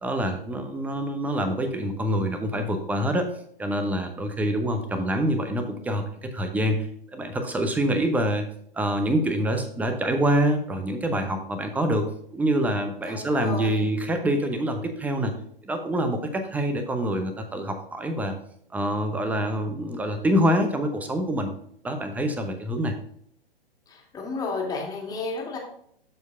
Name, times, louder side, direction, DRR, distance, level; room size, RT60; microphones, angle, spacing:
voice 1, 0.0-3.3 3.6-6.9 7.1-8.5 8.7-12.1 12.3-15.3 15.6-18.3 18.7-21.5 21.8-22.9, right 1 dB, 5° right, 7 dB, 0.7 m, -26 dB
voice 2, 13.1-13.8 23.9-25.6, left 3 dB, 15° left, -1 dB, 2.0 m, -32 dB
13.0 x 4.5 x 2.5 m, 0.67 s
figure-of-eight pair, 120°, 29 cm